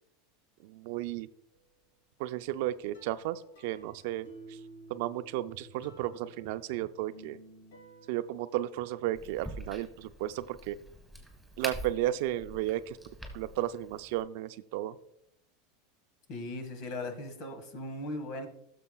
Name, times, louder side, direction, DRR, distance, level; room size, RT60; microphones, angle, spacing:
voice 1, 0.6-1.3 2.2-4.3 4.9-7.4 8.1-10.8 11.6-13.0 13.3-15.0, right 14 dB, 65° right, 12 dB, 0.4 m, -34 dB
sound 1, 1.5-1.9 2.9-8.4, right 1 dB, 80° left, 1.3 m, -53 dB
Crack, 9.1-14.2, right 1 dB, ahead, 2.4 m, -45 dB
voice 2, 16.3-18.5, left 1 dB, 60° left, 7 dB, 1.7 m, -38 dB
15.5 x 6.9 x 2.3 m, 0.75 s
supercardioid pair, 120°, 0 cm